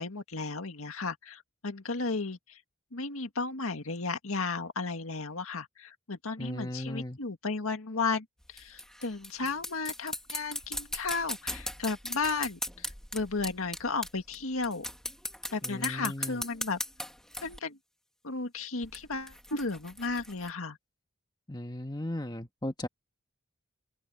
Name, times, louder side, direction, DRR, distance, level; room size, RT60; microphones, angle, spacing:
voice 1, 0.0-2.6 2.9-14.8 15.5-16.8 17.4-17.8 18.2-20.8, left 4 dB, 85° left, 1.9 m, -34 dB
voice 2, 6.4-7.2 15.6-16.4 21.5-22.9, left 1 dB, 20° left, 1.8 m, -36 dB
sound 1, 8.4-14.4 14.6-17.6 18.8-20.5, left 1 dB, 5° left, 1.8 m, -38 dB
head